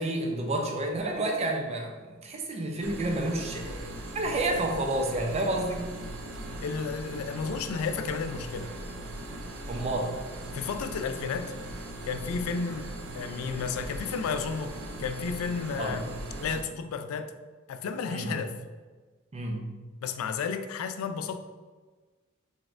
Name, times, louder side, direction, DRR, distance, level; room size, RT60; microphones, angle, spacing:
voice 1, 0.0-5.9 9.7-10.2 15.8-16.0 18.1-18.4 19.3-19.6, right 2 dB, 30° right, 2 dB, 0.5 m, -30 dB
sound 1, 2.8-16.6, right 1 dB, 85° right, 0.5 m, -39 dB
voice 2, 6.6-8.7 10.5-11.5 12.0-12.9 13.1-14.7 15.0-16.1 16.4-17.3 17.7-18.5 20.0-21.4, left 5 dB, 90° left, 9 dB, 0.3 m, -32 dB
4.1 x 3.4 x 2.4 m, 1.4 s
head